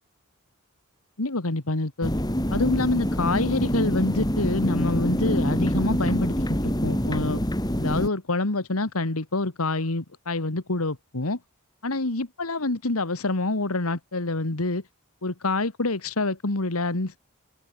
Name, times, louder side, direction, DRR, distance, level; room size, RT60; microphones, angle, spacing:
voice 1, 1.2-2.1 2.5-6.4 6.6-7.4 7.8-11.4 11.8-14.8 15.2-17.2, left 2 dB, 85° left, 1.9 m, -26 dB
sound 1, 2.0-8.1, equal, 20° left, 2.8 m, -25 dB
open air
head